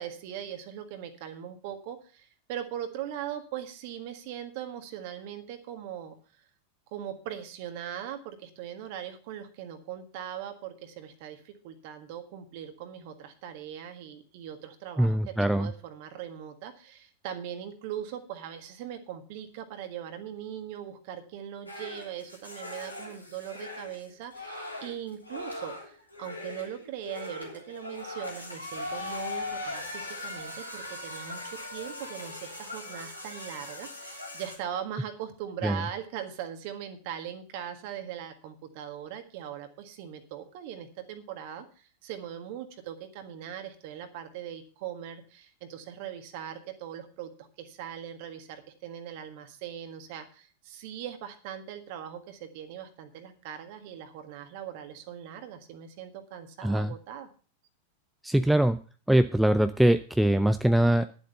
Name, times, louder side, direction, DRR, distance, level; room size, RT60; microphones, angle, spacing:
voice 1, 0.0-6.1 6.9-31.4 31.7-57.3, right 10 dB, 50° right, 7 dB, 1.7 m, -40 dB
voice 2, 15.0-15.7 35.6-35.8 56.6-56.9 58.2-58.8 59.1-61.1, right 1 dB, ahead, 10 dB, 0.5 m, -23 dB
sound 1, 21.7-34.6, left 2 dB, 85° left, 3.3 m, -40 dB
11.0 x 7.4 x 6.7 m, 0.39 s
figure-of-eight pair, 90°, 0 cm